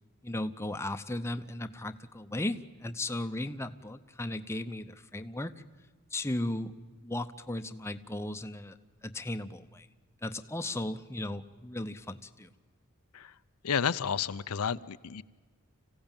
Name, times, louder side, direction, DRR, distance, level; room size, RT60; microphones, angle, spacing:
voice 1, 0.2-5.5 6.1-6.7 7.0-8.8 9.0-9.9 10.2-12.5, left 1 dB, 10° left, 8 dB, 0.7 m, -36 dB
voice 2, 13.6-15.2, left 7 dB, 85° left, 13 dB, 0.6 m, -31 dB
26.0 x 16.5 x 8.9 m, 1.4 s
head